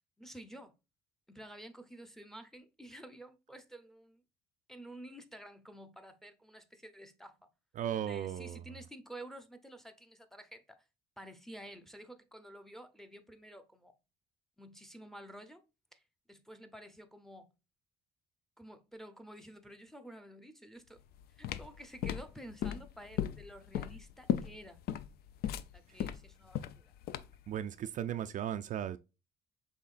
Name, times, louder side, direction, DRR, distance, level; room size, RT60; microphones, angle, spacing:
voice 1, 0.2-0.7 1.3-4.2 4.7-7.5 8.1-10.8 11.2-14.0 14.6-15.6 15.9-16.0 16.3-17.5 18.6-21.0 21.3-24.8 25.7-26.9, right 1 dB, ahead, 0.6 m, -51 dB
voice 2, 7.8-8.6 27.5-29.0, right 10 dB, 50° right, 0.4 m, -36 dB
sound 1, 21.0-27.5, left 10 dB, 65° left, 0.4 m, -36 dB
5.5 x 3.6 x 2.4 m
cardioid pair, 110°, 17 cm